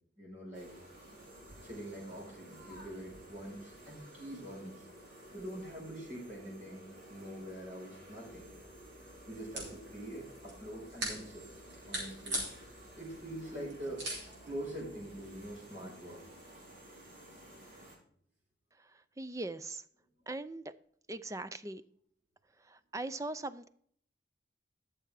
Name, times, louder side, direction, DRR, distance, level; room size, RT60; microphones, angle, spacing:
voice 1, 0.2-0.7 1.6-4.9 5.3-8.5 9.3-11.5 11.9-12.4 13.0-14.1 14.4-16.2, right 1 dB, 40° right, -4 dB, 4.6 m, -44 dB
sound 1, 0.5-18.0, equal, 90° right, 4.5 m, -54 dB
sound 2, 8.3-15.5, right 1 dB, 65° right, 4.5 m, -43 dB
voice 2, 19.2-19.8 20.3-20.6 21.1-21.8 22.7-23.7, right 2 dB, 15° right, 13 dB, 0.4 m, -40 dB
12.5 x 6.8 x 4.8 m, 0.62 s
head